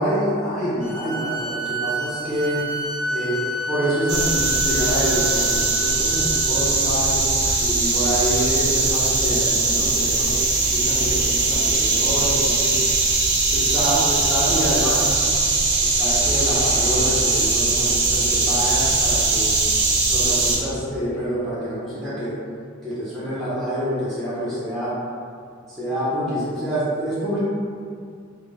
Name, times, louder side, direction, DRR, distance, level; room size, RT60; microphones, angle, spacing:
voice 1, 0.0-2.6 3.1-7.2 7.6-12.8 13.5-15.1 15.8-19.5 20.1-22.3 22.8-25.0 25.7-27.4, equal, ahead, -11 dB, 0.6 m, -26 dB
sound 1, 0.8-6.5, right 1 dB, 80° left, 0.5 m, -30 dB
sound 2, 4.1-20.6, right 3 dB, 60° right, 0.5 m, -20 dB
2.4 x 2.0 x 3.1 m, 2.3 s
head